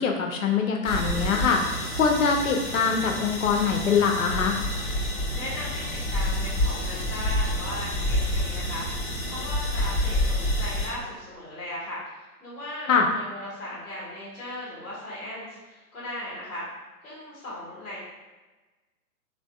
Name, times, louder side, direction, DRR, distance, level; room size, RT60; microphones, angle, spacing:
voice 1, 0.0-1.6 2.0-4.6 12.9-13.1, left 6 dB, 60° left, 2 dB, 0.5 m, -23 dB
sound 1, 0.8-10.9, left 1 dB, 25° left, 0.8 m, -28 dB
voice 2, 5.3-16.7 17.0-18.0, left 1 dB, 5° left, -15 dB, 0.4 m, -37 dB
3.2 x 2.5 x 2.2 m, 1.2 s
figure-of-eight pair, 115°, 46 cm